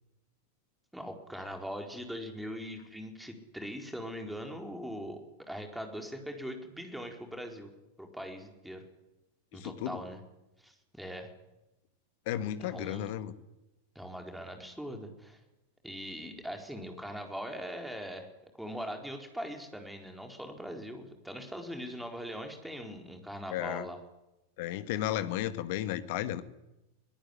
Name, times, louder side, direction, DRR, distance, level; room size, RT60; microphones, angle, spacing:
voice 1, 0.9-7.7 8.0-8.8 9.5-10.2 10.6-11.3 12.6-13.1 13.9-15.4 15.8-18.3 18.6-24.0, equal, ahead, 3 dB, 4.4 m, -41 dB
voice 2, 9.5-10.0 12.3-13.3 23.5-23.9 24.6-26.4, left 12 dB, 50° left, 11 dB, 1.8 m, -34 dB
23.0 x 19.0 x 10.0 m, 0.95 s
figure-of-eight pair, 90°, 0 cm